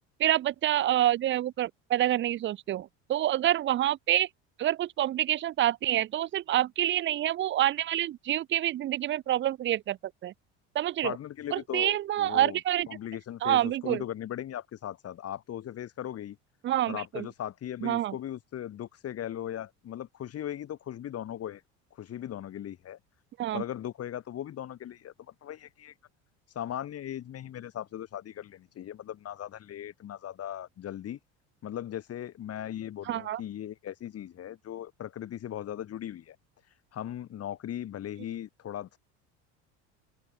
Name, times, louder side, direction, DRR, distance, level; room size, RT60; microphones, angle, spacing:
voice 1, 0.2-4.3 4.6-10.0 10.2-10.3 10.7-11.2 11.5-12.9 13.4-14.0 16.6-17.3 17.8-18.2 23.4-23.6 33.1-33.4, right 13 dB, 35° right, 0.5 m, -27 dB
voice 2, 11.0-12.6 12.9-16.4 16.9-21.6 21.9-23.0 23.5-25.1 25.4-25.9 26.5-31.2 31.6-36.4 36.9-39.0, left 11 dB, 45° left, 2.1 m, -38 dB
supercardioid pair, 95°, 34 cm